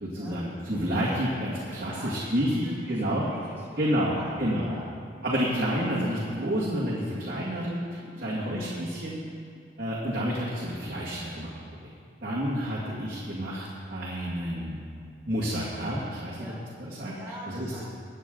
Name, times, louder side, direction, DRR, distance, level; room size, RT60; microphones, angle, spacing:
voice 1, 0.0-3.3 3.8-4.7 5.2-7.8 8.2-9.2 9.8-11.5 12.2-14.8 15.3-16.5 16.8-17.1 17.5-17.7, equal, 50° right, -8 dB, 2.1 m, -29 dB
voice 2, 1.6-4.9 8.0-8.3 16.4-16.6 17.1-17.8, equal, 10° right, -8 dB, 3.0 m, -45 dB
22.0 x 8.5 x 3.9 m, 2.4 s
head